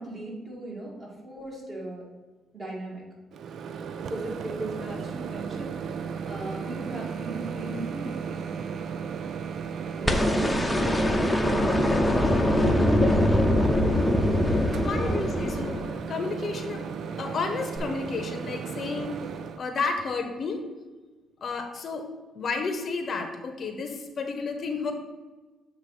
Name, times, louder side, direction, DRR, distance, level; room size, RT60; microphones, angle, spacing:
voice 1, 0.0-2.1 2.5-3.1 4.0-8.8 9.9-13.5 14.7-15.7, right 2 dB, 35° right, -3 dB, 2.3 m, -38 dB
Microwave oven, 3.3-19.6, right 6 dB, 65° right, 0.4 m, -35 dB
sound 1, 10.0-16.2 17.8-17.9, left 1 dB, 5° left, 0.7 m, -23 dB
voice 2, 14.7-15.8 16.1-19.1 19.6-20.6 21.4-22.1 22.3-24.9, left 4 dB, 50° left, 6 dB, 0.8 m, -31 dB
7.6 x 2.9 x 5.8 m, 1.2 s
cardioid pair, 90°, 0 cm